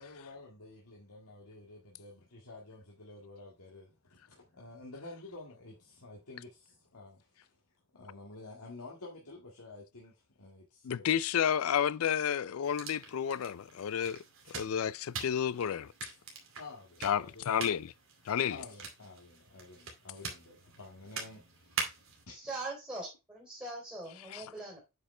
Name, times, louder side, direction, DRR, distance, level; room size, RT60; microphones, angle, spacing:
voice 1, 0.0-7.6 7.9-11.2 16.6-17.4 18.5-22.0 22.3-22.5, left 2 dB, 90° left, 1.9 m, -50 dB
voice 2, 10.8-14.2 14.5-15.9 17.0-17.9 18.3-18.6 24.3-24.4, left 8 dB, 70° left, 0.4 m, -31 dB
sound 1, 12.6-22.2, right 4 dB, 60° right, 2.4 m, -44 dB
voice 3, 22.3-24.8, right 2 dB, 10° right, 3.4 m, -41 dB
8.6 x 5.1 x 3.3 m
head